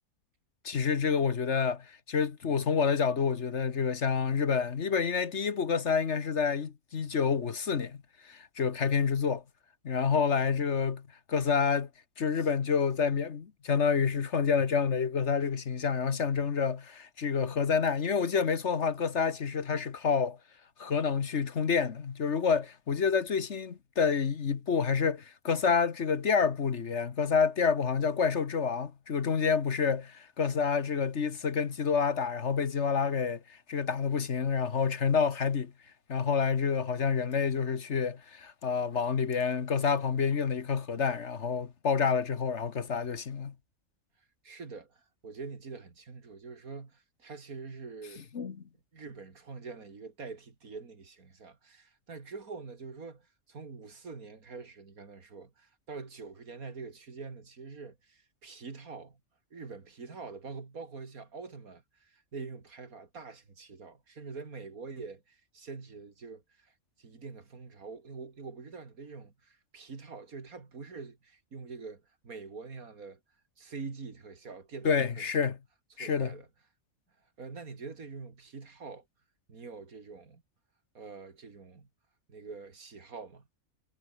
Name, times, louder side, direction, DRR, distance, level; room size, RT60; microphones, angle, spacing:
voice 1, 0.6-8.0 8.2-9.4 9.8-11.0 11.3-11.9 12.2-20.4 20.8-33.4 33.7-35.7 36.1-43.5 48.3-48.6 74.8-75.6 76.0-76.3, left 6 dB, 55° left, 1.5 m, -28 dB
voice 2, 44.4-48.2 48.9-59.2 59.5-66.7 67.0-73.2 73.6-75.5 75.9-76.5 77.4-79.0 79.5-80.4 80.9-81.9 82.3-83.5, right 4 dB, 80° right, 3.1 m, -45 dB
omnidirectional pair, 1.5 m